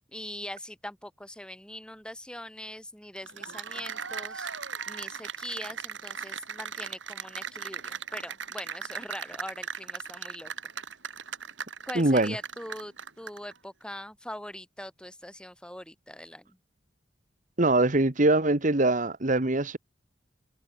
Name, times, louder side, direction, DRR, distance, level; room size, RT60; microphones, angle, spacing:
voice 1, 0.1-4.5 4.9-10.5 11.9-16.6, left 1 dB, 5° left, 5.2 m, -42 dB
Cheering / Applause, 3.2-13.5, right 6 dB, 80° right, 4.3 m, -38 dB
voice 2, 11.9-12.3 17.6-19.8, right 2 dB, 40° right, 1.3 m, -23 dB
head